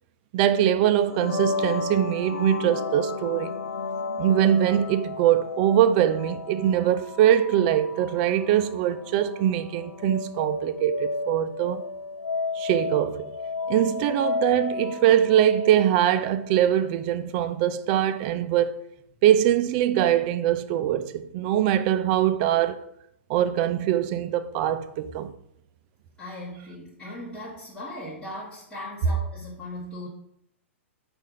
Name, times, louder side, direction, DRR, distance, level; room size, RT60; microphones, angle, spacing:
voice 1, 0.3-3.5 4.2-11.8 12.5-13.3 13.7-18.8 19.2-22.8 23.3-25.3, right 11 dB, 40° right, 0.3 m, -22 dB
sound 1, 1.0-16.7, left 4 dB, 80° left, 0.5 m, -33 dB
voice 2, 26.2-30.1, left 1 dB, 15° left, 1.0 m, -38 dB
4.2 x 2.5 x 4.8 m
hypercardioid pair, 120°, 7 cm